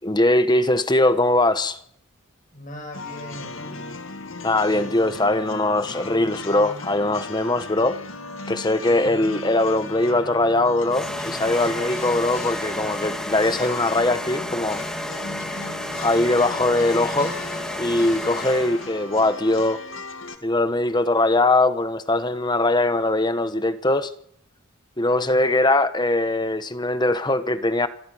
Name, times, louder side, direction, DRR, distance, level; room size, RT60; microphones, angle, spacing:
voice 1, 0.0-1.8 4.4-8.0 8.5-14.8 16.0-17.3 17.8-19.8 20.4-24.1 25.0-27.9, left 2 dB, 20° left, 1.1 m, -21 dB
voice 2, 2.5-3.8 9.0-9.1 18.3-18.8 25.2-25.5, equal, 40° left, 6.8 m, -40 dB
sound 1, 2.9-20.4, left 3 dB, 65° left, 2.2 m, -37 dB
sound 2, 10.9-19.0, left 1 dB, 5° left, 2.0 m, -31 dB
26.5 x 14.0 x 10.0 m
head